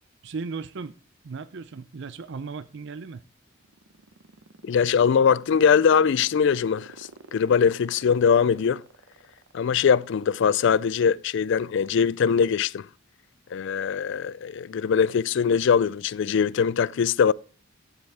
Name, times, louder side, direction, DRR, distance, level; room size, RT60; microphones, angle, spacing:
voice 1, 0.2-0.9 1.2-3.2, right 4 dB, 65° right, 0.5 m, -36 dB
sound 1, 3.5-10.1, right 3 dB, 80° right, 0.9 m, -48 dB
voice 2, 4.6-8.8 9.5-12.9 13.5-17.3, left 6 dB, 65° left, 0.3 m, -22 dB
12.0 x 8.0 x 3.4 m
head